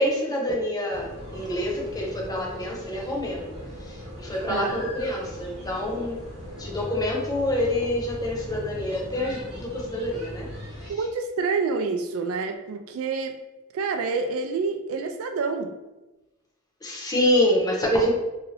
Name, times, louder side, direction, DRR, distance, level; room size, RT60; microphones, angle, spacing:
voice 1, 0.0-3.5 3.9-6.2 6.6-10.5 16.8-18.1, left 1 dB, 20° left, -2 dB, 0.6 m, -26 dB
sound 1, 0.9-10.9, equal, 25° right, 1.0 m, -39 dB
voice 2, 4.5-4.8 10.9-13.4 13.7-15.7, right 4 dB, 75° right, 6 dB, 0.3 m, -28 dB
2.7 x 2.5 x 3.1 m, 1.1 s
head